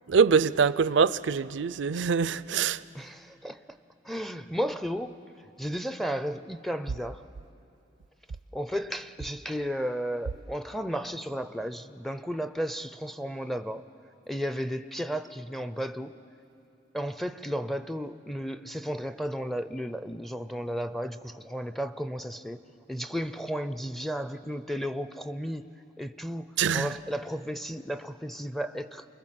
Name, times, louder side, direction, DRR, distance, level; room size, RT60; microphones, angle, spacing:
voice 1, 0.1-2.8 26.6-26.9, right 5 dB, 75° right, 0.5 m, -24 dB
voice 2, 2.9-3.8 4.0-5.2 5.6-7.2 8.5-13.8 14.3-16.1 16.9-22.6 22.9-25.7 26.0-26.5 26.7-29.1, equal, ahead, 0.5 m, -33 dB
28.5 x 21.0 x 7.6 m
head